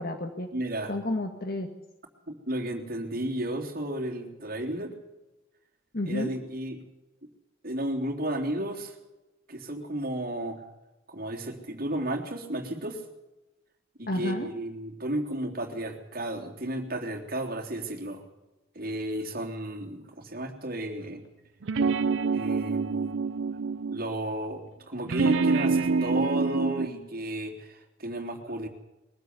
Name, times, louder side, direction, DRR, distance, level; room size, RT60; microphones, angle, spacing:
voice 1, 0.0-0.5 0.9-1.7 5.9-6.3 14.1-14.5, left 1 dB, 50° left, 6 dB, 1.7 m, -31 dB
voice 2, 0.5-0.9 2.3-4.9 6.0-6.8 7.6-9.0 9.5-10.6 11.1-13.0 14.0-18.2 18.7-21.2 22.3-23.2 23.9-28.7, right 1 dB, 50° right, 2 dB, 3.3 m, -33 dB
sound 1, 21.6-24.1 25.1-26.9, right 4 dB, 70° right, 0.6 m, -26 dB
22.0 x 15.5 x 8.2 m, 1.0 s
head